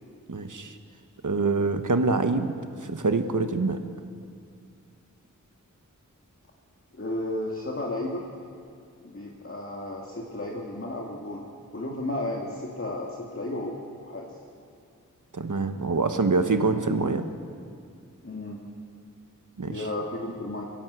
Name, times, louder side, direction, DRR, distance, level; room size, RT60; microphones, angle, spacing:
voice 1, 0.3-0.7 1.2-2.5 2.8-3.8 15.3-17.3 19.6-19.8, right 3 dB, 70° right, 7 dB, 1.3 m, -25 dB
voice 2, 6.9-8.3 9.0-14.3 18.2-18.6 19.7-20.6, left 1 dB, 45° left, -2 dB, 2.2 m, -33 dB
23.0 x 16.0 x 8.2 m, 2.3 s
wide cardioid pair, 65°, 32 cm